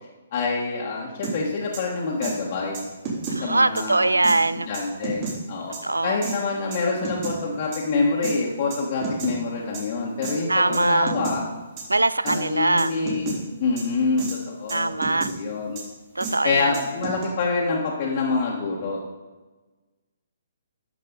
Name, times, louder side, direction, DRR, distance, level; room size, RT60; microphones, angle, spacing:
voice 1, 0.3-2.9 3.4-4.3 4.6-5.7 6.0-11.4 12.2-13.3 13.6-15.0 15.3-15.8 16.4-19.0, left 4 dB, 45° left, -4 dB, 1.5 m, -26 dB
sound 1, 1.2-1.3 1.7-1.8 2.2-2.3 2.7-3.4 3.8-3.9 4.2-4.4 4.7-5.3 5.7-5.8 6.2-6.3 6.7-7.4 7.7-7.8 8.2-8.3 8.7-9.3 9.7-9.8 10.2-10.3 10.7-10.8 11.1-11.4 11.8-11.9 12.3-12.4 12.8-13.4 13.8-13.9 14.2-14.4 14.7-15.3 15.7-15.8 16.2-16.3 16.7-17.2, right 4 dB, 40° right, 3.5 m, -30 dB
voice 2, 3.3-4.7 5.8-6.2 10.5-11.1 11.9-13.0 14.7-15.3 16.2-16.8, right 2 dB, 85° right, 17 dB, 0.3 m, -22 dB
11.0 x 6.6 x 4.0 m, 1.2 s
figure-of-eight pair, 130°, 0 cm